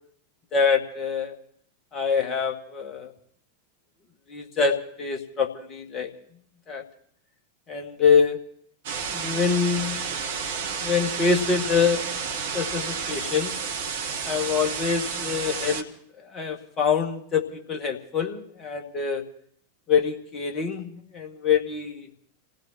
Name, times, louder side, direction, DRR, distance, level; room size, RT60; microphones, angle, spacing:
voice 1, 0.5-1.4 1.9-3.1 4.3-6.1 6.7-6.8 7.7-8.4 9.1-10.0 10.8-12.0 12.5-13.5 14.2-15.9 16.2-19.2 19.9-22.1, left 6 dB, 25° left, 3 dB, 1.8 m, -25 dB
sound 1, 8.8-15.8, right 6 dB, 55° right, 1.3 m, -31 dB
29.5 x 16.5 x 2.9 m, 0.64 s
figure-of-eight pair, 90°, 0 cm